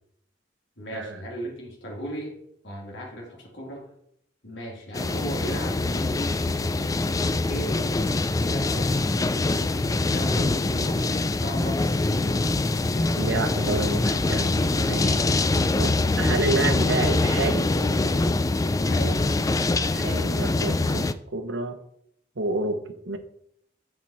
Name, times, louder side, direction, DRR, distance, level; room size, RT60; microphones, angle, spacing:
voice 1, 0.8-2.3 2.6-3.9 4.4-6.3 7.5-7.9 8.5-9.0 9.9-11.8 18.9-19.3, equal, 75° left, -2 dB, 2.5 m, -36 dB
sound 1, 4.9-21.1, left 2 dB, 20° left, 0.3 m, -24 dB
voice 2, 13.2-15.2 15.7-17.7 19.9-21.8 22.4-22.8 23.1-23.2, right 2 dB, 80° right, 8 dB, 1.0 m, -29 dB
7.7 x 7.3 x 4.3 m, 0.71 s
head